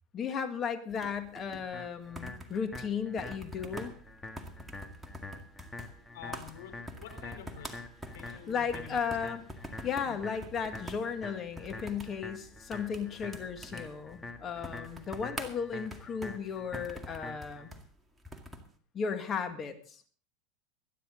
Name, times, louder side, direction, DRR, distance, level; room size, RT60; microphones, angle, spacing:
voice 1, 0.1-3.9 8.5-9.4 9.8-17.7 18.9-20.0, left 6 dB, 30° left, 7 dB, 2.1 m, -35 dB
sound 1, 0.9-18.7, equal, 5° right, 2.1 m, -47 dB
sound 2, 1.7-17.7, left 2 dB, 10° left, 1.9 m, -46 dB
voice 2, 6.1-7.9 8.1-9.3 10.0-10.2, left 9 dB, 80° left, 7 dB, 4.1 m, -48 dB
23.0 x 10.0 x 3.9 m, 0.43 s
supercardioid pair, 120°, 0 cm